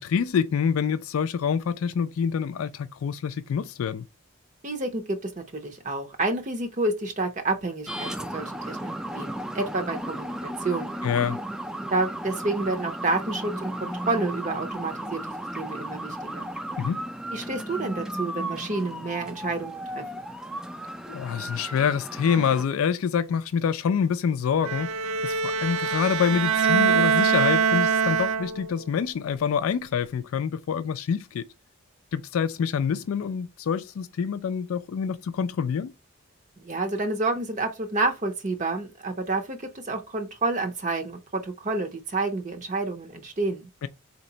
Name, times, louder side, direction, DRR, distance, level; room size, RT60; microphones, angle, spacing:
voice 1, 0.0-4.1 11.0-11.4 16.8-17.0 21.1-24.9 25.2-31.5 32.1-35.9 43.8-43.9, left 7 dB, 85° left, 0.3 m, -26 dB
voice 2, 4.6-11.0 11.9-16.5 17.3-20.1 36.6-43.7, right 2 dB, 35° right, 0.6 m, -29 dB
sound 1, 7.9-22.6, right 1 dB, 5° right, 0.3 m, -35 dB
Bowed string instrument, 24.6-28.8, right 6 dB, 75° right, 0.4 m, -23 dB
4.2 x 2.9 x 3.9 m
head